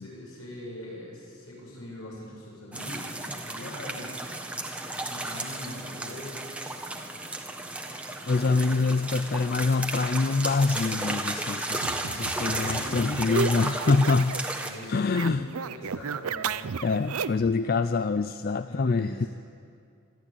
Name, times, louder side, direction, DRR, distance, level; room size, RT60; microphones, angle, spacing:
voice 1, 0.0-4.3 4.9-6.5 11.7-12.9 14.4-17.1 18.7-19.3, left 1 dB, 75° left, -3 dB, 7.9 m, -43 dB
sound 1, 2.7-14.7, right 2 dB, 5° right, 1.3 m, -34 dB
voice 2, 8.3-14.3 14.9-15.5 16.8-19.3, left 4 dB, 45° left, 11 dB, 0.4 m, -25 dB
sound 2, 11.8-14.5 14.7-17.5, right 6 dB, 80° right, 0.6 m, -33 dB
26.5 x 12.5 x 8.9 m, 2.4 s
head